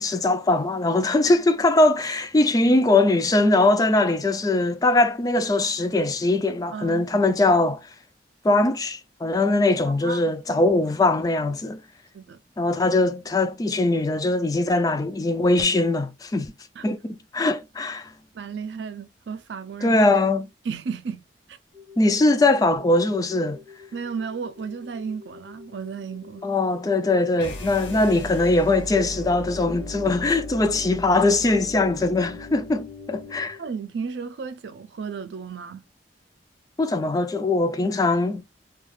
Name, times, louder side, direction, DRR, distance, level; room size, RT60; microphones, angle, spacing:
voice 1, 0.0-7.8 8.4-11.8 12.6-16.5 16.8-18.1 19.8-20.5 22.0-23.6 26.4-33.6 36.8-38.4, left 2 dB, 20° left, 0.3 m, -21 dB
voice 2, 6.7-7.1 9.9-10.3 12.1-12.4 16.8-16.9 18.3-20.0 20.6-21.2 21.5-21.6 23.9-26.4 33.6-35.8, right 6 dB, 75° right, 0.4 m, -33 dB
sound 1, 21.7-33.7, left 6 dB, 45° right, 1.5 m, -48 dB
sound 2, 27.4-33.5, equal, 80° left, 0.9 m, -37 dB
3.2 x 2.3 x 2.4 m
head